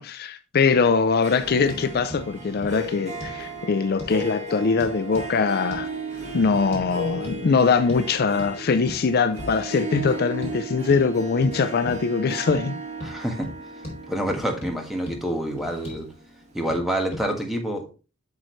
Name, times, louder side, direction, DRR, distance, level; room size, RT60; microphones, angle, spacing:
voice 1, 0.0-5.9 6.3-12.8, left 5 dB, 50° left, 0.5 m, -22 dB
Harp, 1.0-16.4, right 1 dB, 35° right, 1.7 m, -36 dB
sound 1, 1.2-16.1, right 1 dB, 55° right, 3.1 m, -46 dB
sound 2, 1.7-1.8 2.1-2.2 2.6-2.8 3.2-3.4 4.0-4.2 4.8-5.3 5.7-5.9 6.7-6.9 7.2-7.4 7.9-8.1 8.4-8.5 8.9-9.0 9.4-9.6 10.0-10.1 10.4-10.6 10.9-11.0 11.4-11.5 11.9-12.0 12.5-12.6 13.0-13.1 13.4-13.6 13.8-14.0 14.3-14.7 15.1-15.2 15.6-16.0 16.7-16.8 17.1-17.3, left 1 dB, 30° left, 4.4 m, -36 dB
voice 2, 13.0-13.5 14.1-16.1 16.5-17.9, right 1 dB, ahead, 1.5 m, -27 dB
8.3 x 6.3 x 3.1 m
head